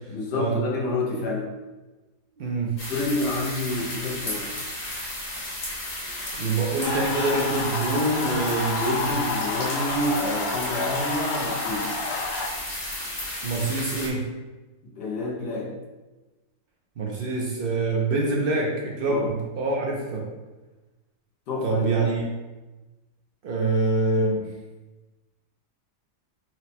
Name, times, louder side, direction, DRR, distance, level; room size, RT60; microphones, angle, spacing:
voice 1, 0.1-1.5 2.9-4.5 8.8-12.1 14.8-15.7 19.1-19.3 21.5-22.1, left 2 dB, 90° left, -2 dB, 1.5 m, -28 dB
voice 2, 2.4-2.7 6.4-9.1 13.4-14.3 17.0-20.2 21.6-22.3 23.4-24.5, right 3 dB, 75° right, -2 dB, 0.5 m, -25 dB
sound 1, 2.8-14.1, left 1 dB, 40° left, 1.1 m, -33 dB
sound 2, 6.8-12.5, left 3 dB, 65° left, 0.6 m, -30 dB
4.5 x 2.1 x 4.2 m, 1.2 s
omnidirectional pair, 1.7 m